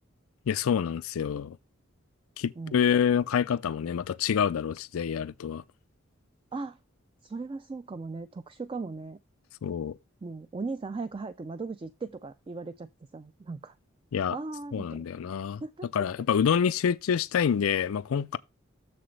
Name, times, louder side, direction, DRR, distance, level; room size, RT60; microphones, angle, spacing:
voice 1, 0.5-1.6 2.4-5.6 9.6-9.9 14.1-14.4 14.7-15.6 15.9-18.4, left 7 dB, 85° left, 0.4 m, -27 dB
voice 2, 7.2-9.2 10.2-13.7 14.3-15.1 15.6-15.9, right 3 dB, 25° right, 0.3 m, -38 dB
7.5 x 6.9 x 3.2 m
head